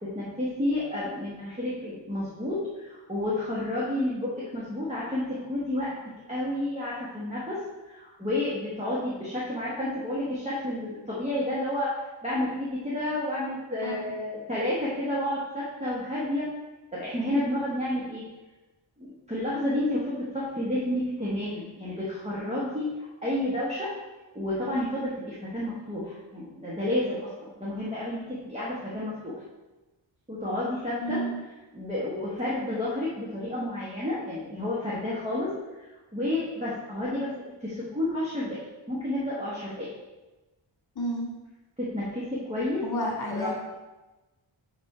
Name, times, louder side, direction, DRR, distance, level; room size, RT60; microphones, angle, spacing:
voice 1, 0.0-5.9 6.3-7.6 7.8-12.0 12.2-16.5 16.9-18.2 19.0-22.9 23.2-23.9 24.3-29.3 30.3-31.2 31.7-35.5 35.8-37.3 37.6-38.6 38.9-39.9 41.8-42.8 43.3-43.5, left 1 dB, 15° right, -8 dB, 1.2 m, -30 dB
voice 2, 31.0-31.3 41.0-41.3 42.8-43.5, equal, 50° left, -2 dB, 2.0 m, -30 dB
5.1 x 4.9 x 4.8 m, 1.1 s
wide cardioid pair, 170°, 48 cm